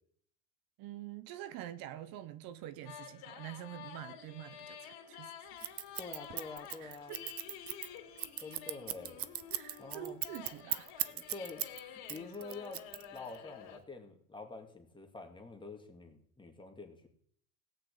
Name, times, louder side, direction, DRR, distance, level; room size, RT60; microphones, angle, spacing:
voice 1, 0.8-5.3 6.8-7.3 9.5-11.1, right 13 dB, 65° right, 1.0 m, -46 dB
sound 1, 2.8-13.8, left 9 dB, 75° left, 2.9 m, -50 dB
Scissors, 5.6-11.8 12.1-13.4, right 12 dB, 40° right, 0.7 m, -37 dB
voice 2, 6.0-7.2 8.4-9.2 9.8-10.2 11.0-11.6 12.1-12.8 13.1-17.1, left 3 dB, 15° left, 2.4 m, -47 dB
17.0 x 6.0 x 8.6 m
cardioid pair, 120°, 38 cm